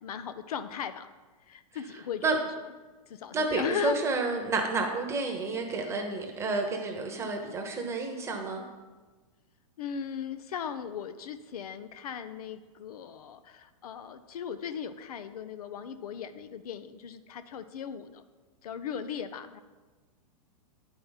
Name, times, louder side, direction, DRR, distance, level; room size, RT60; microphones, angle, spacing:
voice 1, 0.0-1.1 1.5-2.5 3.1-4.0 9.8-18.2 18.6-19.6, left 8 dB, 80° left, 11 dB, 0.6 m, -37 dB
voice 2, 3.3-8.6, right 3 dB, 15° right, 2 dB, 1.0 m, -30 dB
9.1 x 5.2 x 4.0 m, 1.3 s
hypercardioid pair, 140°, 19 cm